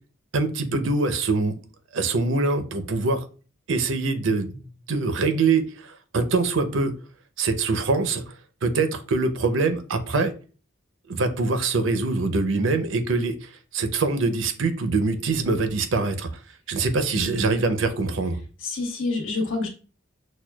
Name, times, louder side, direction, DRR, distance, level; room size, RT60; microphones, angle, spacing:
voice 1, 0.3-1.5 1.9-3.2 3.7-6.9 7.4-8.3 8.6-10.3 11.1-16.3 16.7-18.4, right 3 dB, 70° right, 9 dB, 0.6 m, -24 dB
voice 2, 17.1-17.4 18.6-19.7, left 3 dB, 80° left, 1 dB, 1.2 m, -28 dB
6.1 x 2.2 x 2.3 m, 0.37 s
head